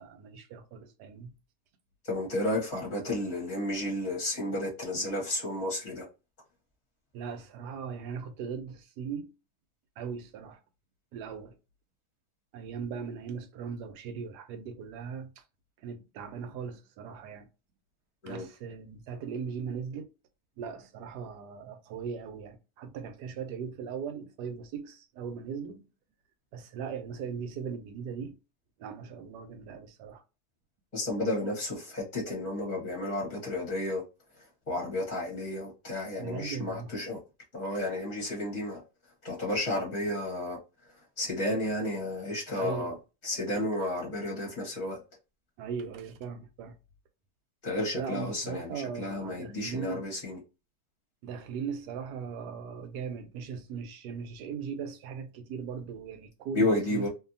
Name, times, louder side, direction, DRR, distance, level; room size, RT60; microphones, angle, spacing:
voice 1, 0.0-1.3 7.1-9.3 10.0-10.6 11.1-11.5 12.5-15.3 15.8-17.5 18.3-20.1 20.6-25.9 26.5-28.3 28.8-30.2 36.2-36.9 42.6-43.0 45.6-46.7 47.9-50.1 51.2-57.0, right 6 dB, 85° right, 1.2 m, -39 dB
voice 2, 2.0-6.1 18.2-18.5 30.9-34.0 34.7-37.2 37.5-38.8 39.2-40.6 41.2-42.9 43.2-45.0 47.6-50.4 56.5-57.1, left 1 dB, 30° left, 0.9 m, -32 dB
2.7 x 2.6 x 2.5 m
omnidirectional pair, 1.7 m